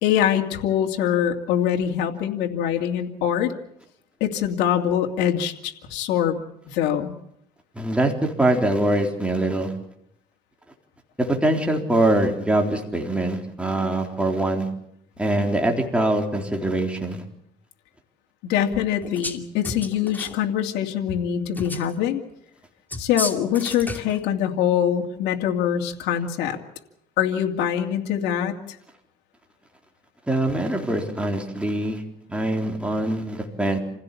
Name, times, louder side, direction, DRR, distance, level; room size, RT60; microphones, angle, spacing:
voice 1, 0.0-3.5 4.2-7.1 18.4-22.2 23.0-26.6 27.2-28.8, left 10 dB, 90° left, 3 dB, 2.6 m, -24 dB
voice 2, 7.7-9.7 11.2-14.7 15.2-17.2 30.3-32.0 32.3-33.8, right 1 dB, 5° right, 2 dB, 3.8 m, -23 dB
sound 1, 19.0-19.4 19.6-20.4 21.5-21.9 22.9-24.2, left 2 dB, 10° left, 2.5 m, -32 dB
27.5 x 16.5 x 8.5 m, 0.75 s
cardioid pair, 110°, 17 cm